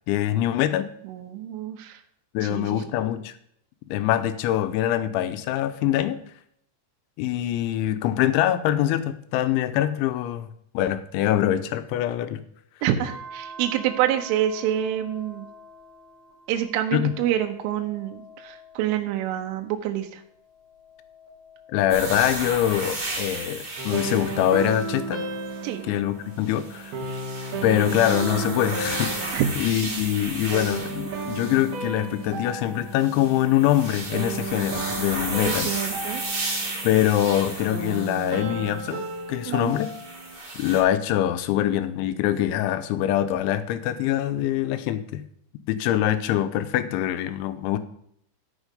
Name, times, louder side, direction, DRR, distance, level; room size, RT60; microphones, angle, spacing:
voice 1, 0.1-0.9 2.3-3.3 3.9-6.2 7.2-10.5 10.7-12.4 16.9-17.1 21.7-25.3 25.9-27.0 27.6-35.7 36.8-39.9 40.6-45.2 45.7-47.8, left 12 dB, 85° left, 11 dB, 2.8 m, -24 dB
voice 2, 1.1-2.0 2.4-2.9 12.8-15.5 16.5-20.2 25.6-25.8 29.3-29.5 35.4-36.2 39.5-39.8, right 11 dB, 80° right, 4 dB, 3.4 m, -27 dB
sound 1, 13.0-19.8 20.2-23.1 23.7-26.5 27.2-29.7 31.0-32.1, equal, 55° left, 1.6 m, -48 dB
sound 2, 21.9-25.6 26.4-31.8 32.9-39.0 39.7-40.8, right 2 dB, 30° right, 0.9 m, -34 dB
sound 3, 23.8-40.4, right 4 dB, 60° right, 2.9 m, -34 dB
14.5 x 5.3 x 5.1 m, 0.68 s
omnidirectional pair, 5.7 m